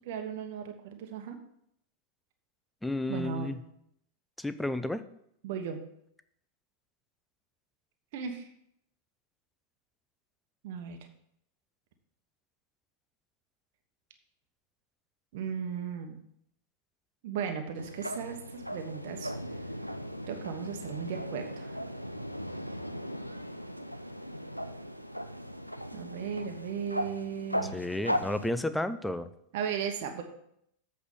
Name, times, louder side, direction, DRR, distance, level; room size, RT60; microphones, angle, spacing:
voice 1, 0.0-1.4 3.1-3.5 5.4-5.8 8.1-8.5 10.6-11.0 15.3-16.2 17.2-19.3 20.3-21.8 25.9-27.8 29.5-30.2, right 7 dB, 50° right, 5 dB, 1.1 m, -36 dB
voice 2, 2.8-3.6 4.4-5.0 27.7-29.3, left 1 dB, 5° left, 12 dB, 0.5 m, -32 dB
sound 1, 17.8-28.5, equal, 90° left, 0.5 m, -37 dB
8.1 x 5.0 x 7.3 m, 0.72 s
figure-of-eight pair, 90°, 0 cm